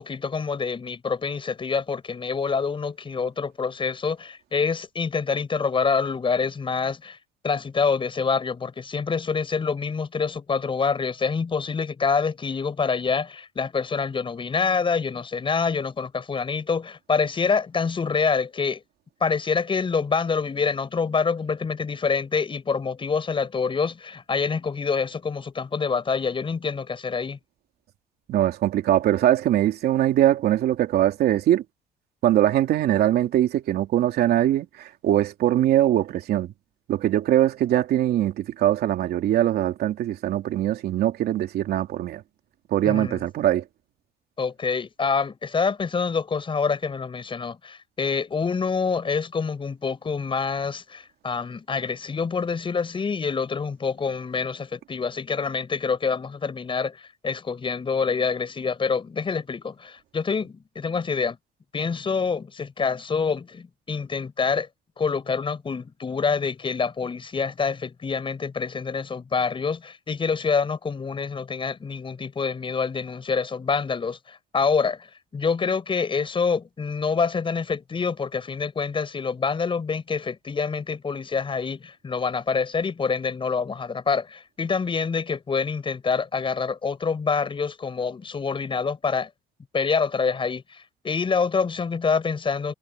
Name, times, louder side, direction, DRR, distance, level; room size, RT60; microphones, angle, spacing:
voice 1, 0.0-7.2 7.4-18.8 19.2-27.4 42.8-43.2 44.4-61.4 61.7-64.7 65.0-75.1 75.3-89.3 89.7-92.7, left 5 dB, 30° left, 7.4 m, -26 dB
voice 2, 28.3-31.6 32.2-36.5 36.9-42.2 42.7-43.6, right 12 dB, 70° right, 2.9 m, -22 dB
cardioid pair, 110°, 17 cm